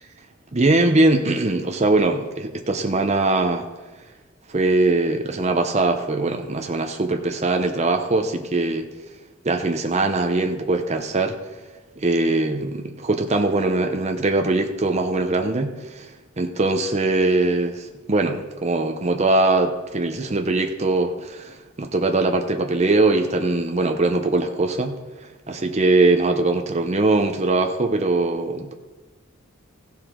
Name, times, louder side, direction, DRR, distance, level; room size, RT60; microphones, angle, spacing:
voice 1, 0.5-3.7 4.5-8.9 9.4-11.4 12.0-24.9 25.5-28.7, right 2 dB, 30° right, 5 dB, 0.7 m, -21 dB
15.5 x 7.4 x 3.8 m, 1.2 s
head